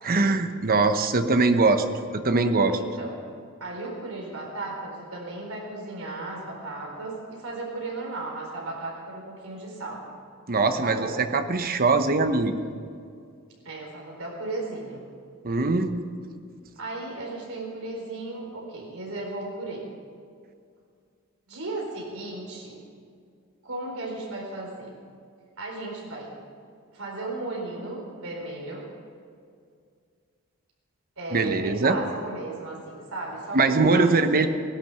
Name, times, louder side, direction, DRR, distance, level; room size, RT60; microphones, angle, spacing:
voice 1, 0.0-1.8 2.1-2.8 10.5-12.5 15.4-16.1 31.3-32.0 33.5-34.5, right 3 dB, 45° right, 8 dB, 1.0 m, -22 dB
voice 2, 2.7-3.1 3.6-10.0 10.8-11.2 13.6-15.0 16.8-19.8 21.5-22.8 23.6-24.9 25.6-26.3 26.9-28.9 31.2-34.5, right 2 dB, 70° right, -1 dB, 4.5 m, -35 dB
17.0 x 11.5 x 6.9 m, 2.2 s
head